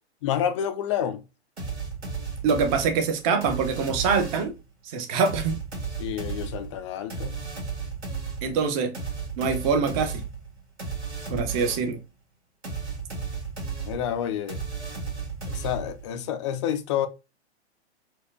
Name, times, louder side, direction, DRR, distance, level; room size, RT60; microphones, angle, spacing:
voice 1, 0.2-1.2 6.0-7.4 13.8-14.6 15.5-17.1, left 9 dB, 30° left, 0.4 m, -29 dB
sound 1, 1.6-4.6 5.3-12.0 12.6-16.1, right 5 dB, 75° right, 1.8 m, -34 dB
voice 2, 2.4-4.5 4.8-5.5 8.4-8.9 9.4-10.2 11.3-12.0, right 5 dB, 30° right, 0.7 m, -24 dB
4.3 x 2.2 x 2.4 m
figure-of-eight pair, 105°, 33 cm